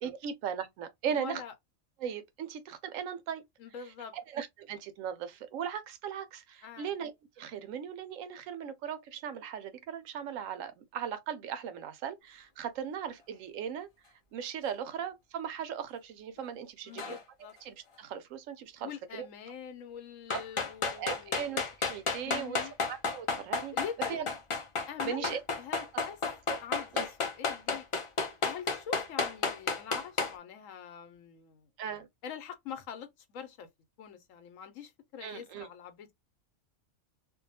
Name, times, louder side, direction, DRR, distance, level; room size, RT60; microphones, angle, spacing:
voice 1, 0.0-1.4 2.0-3.4 4.3-7.1 7.4-13.9 14.3-17.2 17.6-19.3 20.3-20.4 20.8-22.6 22.9-23.7 24.1-24.2 25.0-25.4 26.5-26.6 26.9-27.1 31.8-32.1 35.2-35.7, right 8 dB, 85° right, 1.0 m, -38 dB
voice 2, 1.1-1.5 3.6-4.2 6.6-6.9 16.8-17.5 18.8-21.4 22.2-22.7 23.7-24.3 24.9-26.2 26.6-27.9 28.4-31.7 32.2-33.7 34.0-36.1, left 8 dB, 80° left, 1.0 m, -44 dB
sound 1, 17.0-17.2 20.3-30.3, left 4 dB, 50° left, 0.3 m, -32 dB
2.6 x 2.2 x 2.6 m
omnidirectional pair, 1.3 m